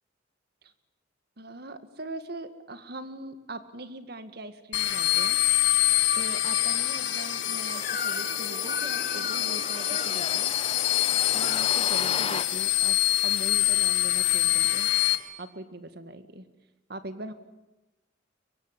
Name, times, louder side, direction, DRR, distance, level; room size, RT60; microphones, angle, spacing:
voice 1, 1.4-5.4 6.1-10.5 11.3-13.0 13.2-14.9 15.4-16.5 16.9-17.3, right 1 dB, 55° right, 10 dB, 2.0 m, -41 dB
sound 1, 4.7-15.2, left 14 dB, 85° left, 2.0 m, -25 dB
sound 2, 6.5-12.4, left 4 dB, 30° left, 1.3 m, -37 dB
Crying sobbing / Screech, 7.8-8.4 8.7-10.2 11.0-11.7, left 5 dB, 50° left, 2.0 m, -36 dB
23.5 x 23.0 x 9.8 m, 1.1 s
head